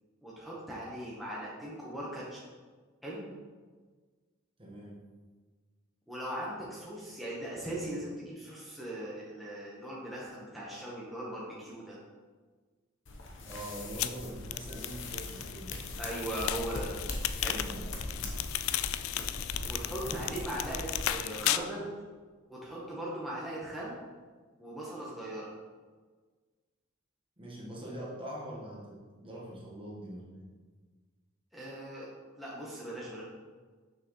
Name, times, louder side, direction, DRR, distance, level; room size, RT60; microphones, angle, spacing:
voice 1, 0.2-2.4 3.0-3.3 6.1-12.0 16.0-16.9 17.3-17.7 19.7-21.9 22.5-24.0 24.6-25.5 31.5-32.1 32.4-33.2, right 1 dB, ahead, -7 dB, 1.1 m, -39 dB
voice 2, 4.6-5.0 13.4-15.7 17.5-18.0 27.4-30.5, right 1 dB, 25° right, -4 dB, 1.3 m, -43 dB
sound 1, 13.1-21.1, left 2 dB, 65° left, 0.9 m, -40 dB
sound 2, 14.0-21.6, left 13 dB, 85° left, 0.3 m, -35 dB
6.3 x 5.8 x 3.1 m, 1.4 s
head